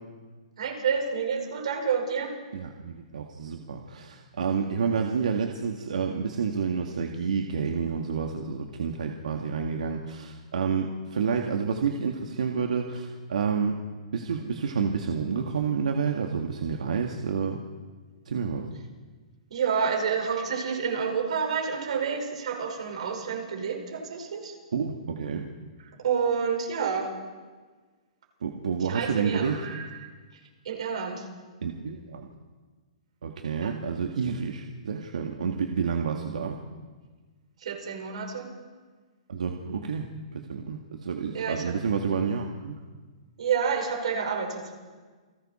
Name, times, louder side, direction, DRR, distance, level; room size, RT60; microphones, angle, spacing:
voice 1, 0.6-2.3 19.5-24.5 26.0-27.1 28.9-30.0 30.7-31.3 33.6-33.7 37.6-38.5 41.3-41.8 43.4-44.7, right 6 dB, 60° right, 2 dB, 5.3 m, -29 dB
voice 2, 2.5-13.8 14.1-17.6 18.3-18.7 24.7-25.5 28.4-29.6 31.6-32.3 33.2-36.6 39.3-40.1 40.3-42.8, right 6 dB, 85° right, 2 dB, 1.9 m, -29 dB
29.0 x 20.5 x 4.4 m, 1.4 s
hypercardioid pair, 175°, 4 cm